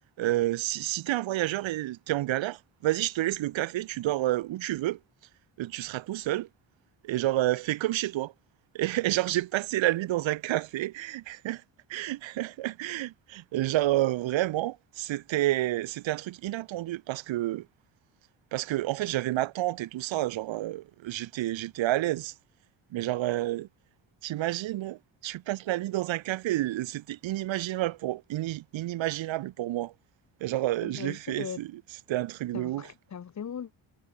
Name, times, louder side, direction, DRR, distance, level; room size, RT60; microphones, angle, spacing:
voice 1, 0.2-5.0 5.6-6.5 7.0-8.3 8.7-11.6 11.9-17.7 18.5-22.3 22.9-23.7 24.2-29.9 30.4-31.7 32.1-32.9, right 15 dB, 75° right, 0.8 m, -29 dB
voice 2, 30.8-31.6 32.5-33.7, left 7 dB, 40° left, 0.8 m, -39 dB
cardioid pair, 95°, 46 cm